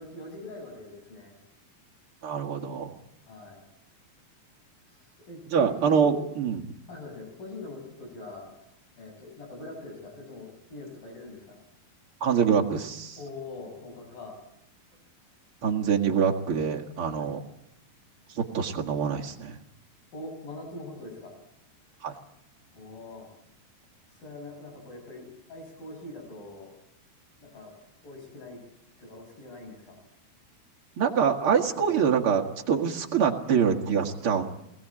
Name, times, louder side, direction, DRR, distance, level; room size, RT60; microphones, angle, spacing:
voice 1, 0.0-1.3 3.2-3.6 5.0-6.1 6.9-8.5 9.0-11.5 13.2-14.4 17.1-17.3 20.1-21.3 22.7-23.3 24.1-26.7 27.4-27.7 28.0-28.6 29.0-30.0, left 2 dB, 60° left, 1 dB, 8.5 m, -42 dB
voice 2, 2.2-2.9 5.5-6.7 12.2-13.2 15.6-17.4 18.3-19.6 22.0-22.1 31.0-34.4, right 7 dB, 45° right, 0 dB, 2.1 m, -25 dB
24.0 x 20.0 x 8.8 m, 0.79 s
omnidirectional pair, 4.6 m